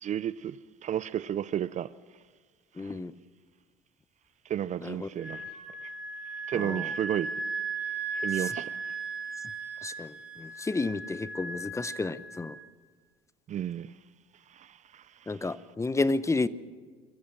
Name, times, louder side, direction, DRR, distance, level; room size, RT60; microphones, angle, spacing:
voice 1, 0.0-1.9 2.8-2.9 4.5-5.5 5.8-5.9 6.5-7.3 8.1-8.8 13.5-13.9 14.5-15.3, right 10 dB, 40° right, 0.5 m, -33 dB
voice 2, 2.8-3.1 4.8-5.1 6.5-6.9 8.3-8.5 9.8-12.6 15.3-16.5, left 3 dB, 15° left, 0.7 m, -31 dB
Wind instrument woodwind instrument, 5.2-12.6, right 4 dB, 5° right, 4.5 m, -37 dB
23.5 x 14.5 x 7.9 m
hypercardioid pair, 80°, 20 cm